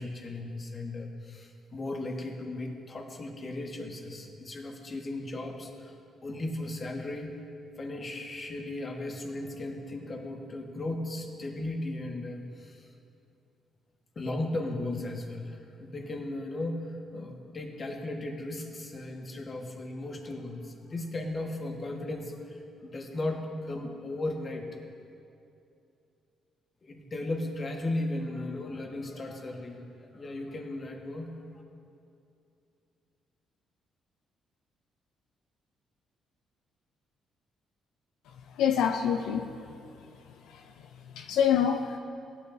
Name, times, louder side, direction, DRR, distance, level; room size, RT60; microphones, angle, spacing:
voice 1, 0.0-6.0 6.2-7.3 7.8-12.9 14.1-24.7 26.8-31.4, left 2 dB, 40° left, 2 dB, 1.4 m, -36 dB
voice 2, 38.6-39.7 40.5-40.7 41.1-42.0, left 8 dB, 90° left, 5 dB, 0.4 m, -26 dB
17.0 x 9.1 x 2.7 m, 2.6 s
cardioid pair, 90°, 0 cm